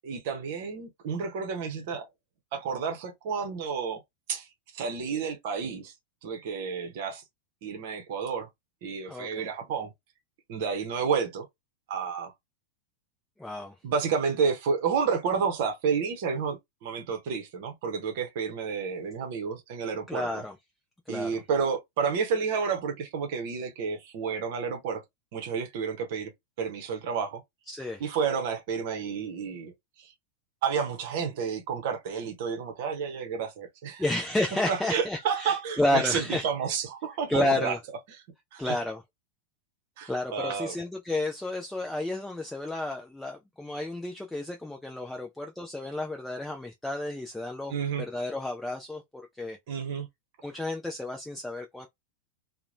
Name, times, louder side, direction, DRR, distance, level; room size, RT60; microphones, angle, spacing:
voice 1, 0.0-2.1 2.5-4.0 4.3-4.5 4.7-5.9 6.2-7.2 7.6-8.5 8.8-9.9 10.5-11.5 11.9-12.3 13.8-20.4 21.1-25.0 25.3-26.3 26.6-27.4 28.0-29.7 30.0-30.1 30.6-34.0 34.7-37.7 38.5-38.8 40.0-40.7 47.7-48.1 49.7-50.1, right 6 dB, 50° right, 0.7 m, -30 dB
voice 2, 9.1-9.5 13.4-13.7 20.1-20.6 21.1-21.4 27.7-28.0 34.0-36.5 37.3-37.8 38.6-39.0 40.1-49.6 50.4-51.9, left 2 dB, 5° left, 0.4 m, -31 dB
2.9 x 2.1 x 2.4 m
figure-of-eight pair, 90°, 0 cm